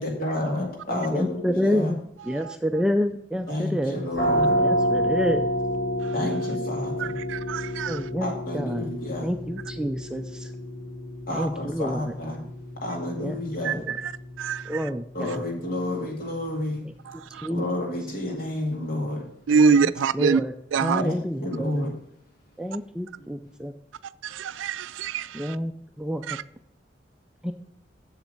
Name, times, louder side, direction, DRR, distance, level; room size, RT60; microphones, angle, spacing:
voice 1, 0.0-2.0 3.5-4.6 6.1-7.2 8.2-9.3 11.3-12.4 12.8-13.8 15.1-16.9 17.5-19.3 21.0-21.9, left 1 dB, 50° left, 0 dB, 2.2 m, -30 dB
voice 2, 0.9-2.0 2.2-4.1 4.5-5.5 7.9-8.9 9.2-10.5 11.3-12.1 13.2-13.4 13.7-13.9 14.7-15.4 17.1-17.6 19.6-19.8 20.1-20.5 20.8-21.8 22.6-23.7 25.3-25.7 26.0-26.4 27.4-27.5, equal, 5° right, 6 dB, 0.3 m, -28 dB
sound 1, 4.1-15.6, equal, 75° left, 3.7 m, -29 dB
voice 3, 7.0-8.0 13.6-14.1 14.4-14.9 17.1-17.5 19.5-20.4 20.7-21.0 24.2-25.6 26.3-26.4, right 5 dB, 90° right, 17 dB, 0.4 m, -25 dB
7.4 x 7.2 x 5.3 m, 0.70 s
head